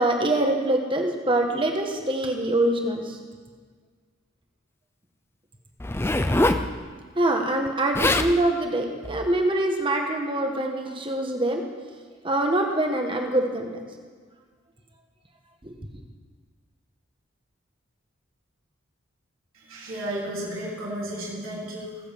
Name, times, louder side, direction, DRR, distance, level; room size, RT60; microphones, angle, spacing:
voice 1, 0.0-3.2 7.2-11.6 12.2-13.8 15.6-15.7, right 1 dB, 25° right, 3 dB, 1.3 m, -24 dB
Zipper (clothing), 5.8-6.7 7.7-7.8 7.9-8.3 9.0-9.3, left 2 dB, 10° left, 0.4 m, -23 dB
voice 2, 19.7-22.0, right 1 dB, 75° right, -6 dB, 3.4 m, -33 dB
19.0 x 8.1 x 5.2 m, 1.5 s
head